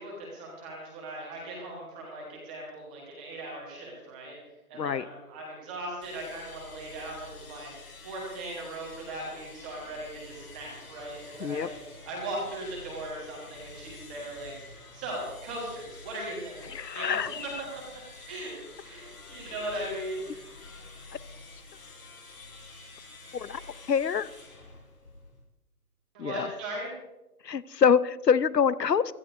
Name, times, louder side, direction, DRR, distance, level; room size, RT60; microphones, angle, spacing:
voice 1, 0.0-4.4 4.7-11.7 12.1-16.6 16.9-17.8 18.3-18.5 18.8-20.5 26.1-26.9, right 1 dB, 5° right, -3 dB, 1.1 m, -38 dB
voice 2, 4.7-5.0 11.4-11.7 16.7-17.5 23.3-23.6 23.9-24.3 26.2-26.5 27.4-29.1, left 7 dB, 85° left, 17 dB, 0.9 m, -25 dB
sound 1, 6.0-25.5, left 3 dB, 70° left, 5.4 m, -48 dB
24.5 x 15.0 x 2.7 m, 1.0 s
hypercardioid pair, 165°, 48 cm